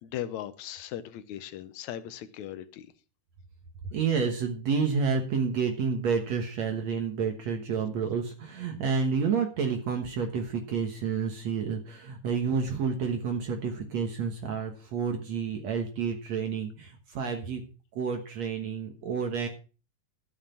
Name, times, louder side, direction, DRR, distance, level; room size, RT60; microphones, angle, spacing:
voice 1, 0.0-2.9, left 11 dB, 75° left, 1.9 m, -38 dB
voice 2, 3.9-17.6 18.0-19.5, right 5 dB, 60° right, 2.3 m, -29 dB
13.0 x 7.4 x 5.7 m
omnidirectional pair, 3.9 m